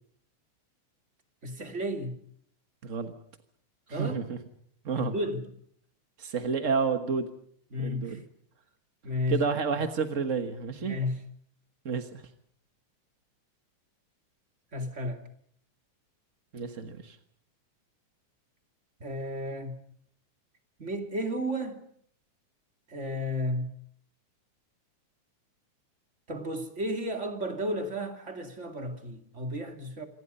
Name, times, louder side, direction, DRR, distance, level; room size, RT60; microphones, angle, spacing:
voice 1, 1.4-2.2 3.9-4.2 4.9-5.5 7.7-8.2 9.0-9.4 10.8-11.2 14.7-15.2 19.0-19.8 20.8-21.8 22.9-23.7 26.3-30.1, left 1 dB, 25° right, 2.6 m, -33 dB
voice 2, 2.8-3.1 3.9-4.4 4.8-5.1 6.2-7.3 7.8-8.2 9.3-11.0 11.8-12.2 16.5-17.2, right 5 dB, 45° right, 0.9 m, -30 dB
27.5 x 25.0 x 5.5 m
omnidirectional pair, 3.4 m